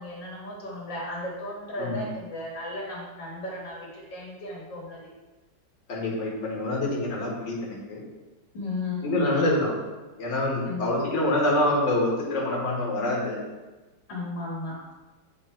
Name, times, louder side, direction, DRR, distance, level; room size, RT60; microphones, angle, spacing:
voice 1, 0.0-5.1 8.5-9.1 10.6-11.0 14.1-14.8, left 2 dB, 85° left, -4 dB, 2.1 m, -35 dB
voice 2, 5.9-8.0 9.0-9.7 10.2-13.4, left 1 dB, 45° left, -4 dB, 1.7 m, -26 dB
8.8 x 3.3 x 4.3 m, 1.2 s
omnidirectional pair, 1.9 m